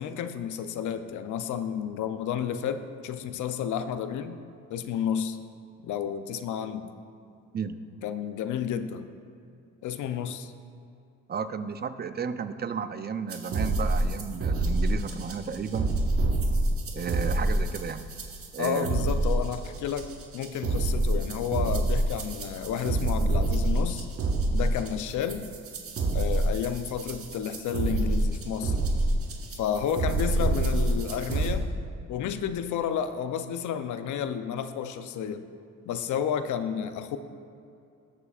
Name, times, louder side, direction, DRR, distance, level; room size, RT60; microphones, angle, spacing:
voice 1, 0.0-4.4 4.7-5.4 5.8-6.9 8.0-9.1 9.8-10.5 18.6-24.1 24.5-25.5 26.1-28.8 29.6-31.7 32.1-35.4 35.9-37.2, left 8 dB, 75° left, 10 dB, 0.7 m, -31 dB
voice 2, 11.3-15.9 16.9-18.1 18.5-19.1, right 6 dB, 35° right, 10 dB, 0.6 m, -33 dB
sound 1, 13.3-31.5, right 2 dB, 50° right, 1.2 m, -27 dB
19.0 x 6.9 x 2.5 m, 2.5 s
cardioid pair, 90°, 30 cm